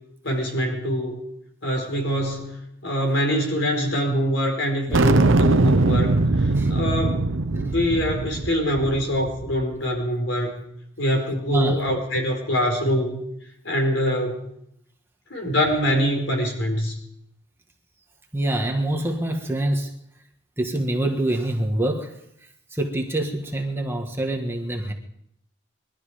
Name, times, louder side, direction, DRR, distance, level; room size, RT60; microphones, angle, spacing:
voice 1, 0.2-1.2 1.6-10.6 11.0-13.2 13.6-14.5 15.3-17.0, equal, 70° left, 2 dB, 4.7 m, -24 dB
sound 1, 4.9-9.6, right 2 dB, 75° right, 0.8 m, -21 dB
voice 2, 11.5-11.8 18.3-19.9 20.6-24.9, right 1 dB, 10° right, 2 dB, 1.5 m, -26 dB
22.0 x 12.5 x 5.1 m, 0.76 s
head